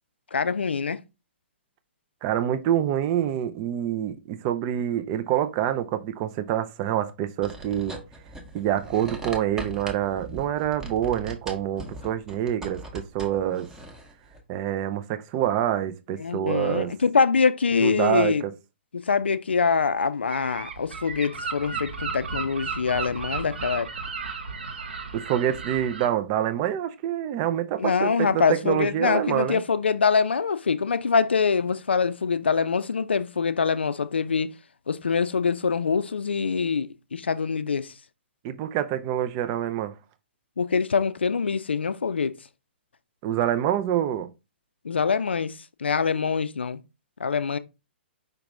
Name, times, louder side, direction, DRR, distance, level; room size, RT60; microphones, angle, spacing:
voice 1, 0.3-1.0 16.2-18.4 18.9-23.9 27.8-34.5 34.9-37.9 40.6-42.3 44.8-46.8 47.2-47.6, left 5 dB, 70° left, 0.4 m, -24 dB
voice 2, 2.2-8.0 8.5-13.7 14.5-16.9 17.8-18.5 25.1-29.6 38.4-39.9 43.2-44.3, right 11 dB, 30° right, 0.5 m, -26 dB
sound 1, 7.4-14.4, right 2 dB, 10° right, 0.9 m, -40 dB
Gull seagull, 20.3-26.1, right 4 dB, 65° right, 0.9 m, -34 dB
5.2 x 2.9 x 3.5 m
figure-of-eight pair, 120°, 6 cm